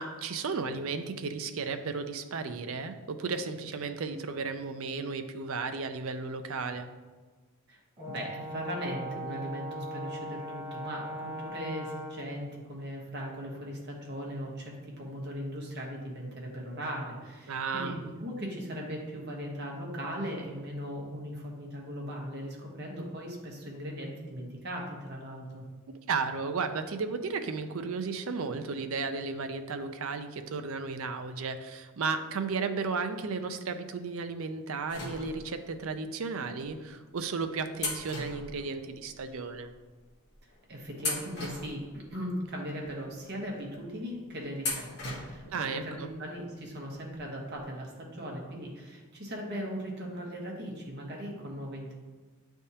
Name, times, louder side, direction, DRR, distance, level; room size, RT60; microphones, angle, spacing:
voice 1, 0.0-6.9 17.5-18.0 25.9-39.7 45.5-46.1, right 4 dB, 65° right, 8 dB, 0.5 m, -34 dB
Brass instrument, 8.0-12.4, equal, 20° right, 1.0 m, -39 dB
voice 2, 8.0-25.6 40.7-51.9, equal, 50° right, -1 dB, 1.2 m, -38 dB
sound 1, 34.9-35.7 36.6-36.7 37.8-39.2 39.5-39.6 40.3-40.5 41.0-42.3 42.8-42.9 44.6-45.6 45.9-46.0 47.1-47.2 47.5-47.6, left 2 dB, 50° left, 1.3 m, -37 dB
9.5 x 3.5 x 2.8 m, 1.4 s
head